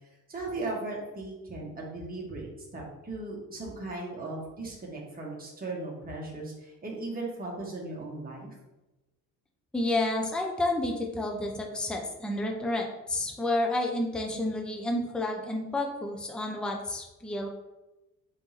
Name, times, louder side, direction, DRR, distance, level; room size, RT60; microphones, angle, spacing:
voice 1, 0.3-8.5, right 2 dB, 20° right, -3 dB, 1.4 m, -37 dB
voice 2, 9.7-17.5, left 1 dB, ahead, 1 dB, 0.6 m, -30 dB
3.5 x 3.0 x 4.2 m, 1.0 s
hypercardioid pair, 50°, 49 cm